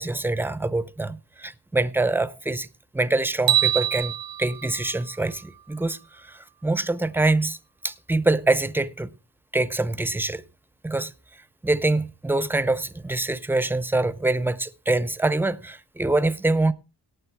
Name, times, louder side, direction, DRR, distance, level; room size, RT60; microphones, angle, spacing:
voice 1, 0.0-2.7 2.9-7.6 7.8-9.1 9.5-10.4 10.8-11.1 11.6-16.7, right 2 dB, 5° right, 0.5 m, -25 dB
sound 1, 3.5-5.7, right 14 dB, 55° right, 0.5 m, -25 dB
18.0 x 6.7 x 4.5 m
wide cardioid pair, 150°, 43 cm